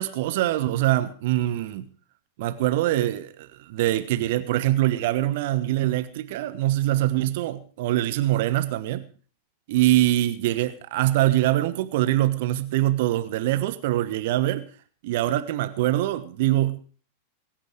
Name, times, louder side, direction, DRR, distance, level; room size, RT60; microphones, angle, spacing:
voice 1, 0.0-1.9 2.4-9.0 9.7-14.6 15.0-16.8, right 15 dB, 50° right, 1.2 m, -23 dB
22.0 x 10.5 x 4.6 m
figure-of-eight pair, 90°, 0 cm